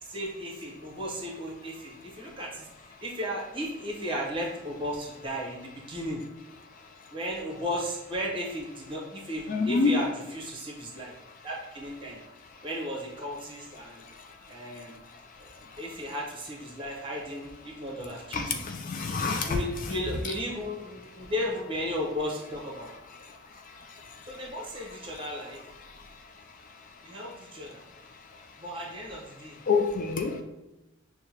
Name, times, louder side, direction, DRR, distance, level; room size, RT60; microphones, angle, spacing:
voice 1, 0.0-6.2 7.1-11.1 11.4-12.2 12.6-14.0 14.5-15.0 15.4-15.5 15.8-18.6 19.5-22.9 24.2-25.6 27.0-27.8 28.6-29.6, equal, 25° right, -2 dB, 1.0 m, -35 dB
voice 2, 9.5-10.1 18.3-19.6 29.7-30.4, left 4 dB, 40° left, 5 dB, 0.3 m, -26 dB
6.5 x 2.2 x 2.8 m, 0.97 s
head